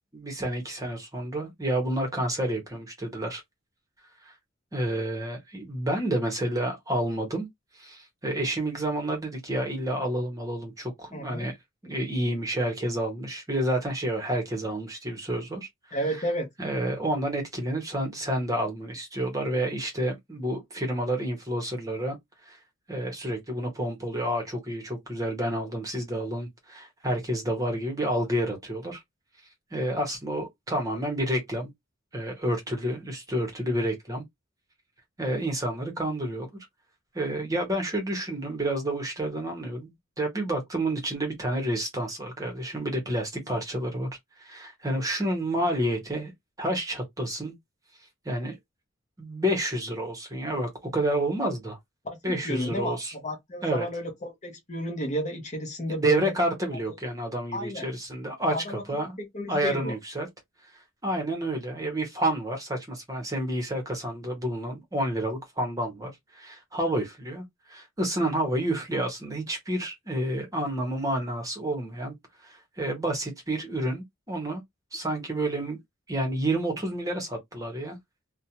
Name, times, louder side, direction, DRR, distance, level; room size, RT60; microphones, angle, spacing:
voice 1, 0.1-3.4 4.2-4.3 4.7-7.5 7.7-11.6 11.8-15.7 16.0-16.1 16.6-22.2 22.4-22.6 22.9-29.0 29.7-31.7 32.1-34.2 35.2-36.5 37.1-44.1 44.4-46.3 46.6-47.5 48.2-48.6 49.2-51.8 52.2-53.1 53.6-53.9 55.9-59.2 59.5-60.3 61.0-72.1 72.4-74.6 74.9-75.8 76.1-78.0, right 1 dB, 15° right, 0.8 m, -29 dB
voice 2, 11.1-11.5 15.9-16.5 52.0-56.3 56.9-57.0 57.5-57.9 58.5-58.8 59.3-59.9, equal, 35° left, 0.7 m, -32 dB
2.4 x 2.1 x 2.8 m
head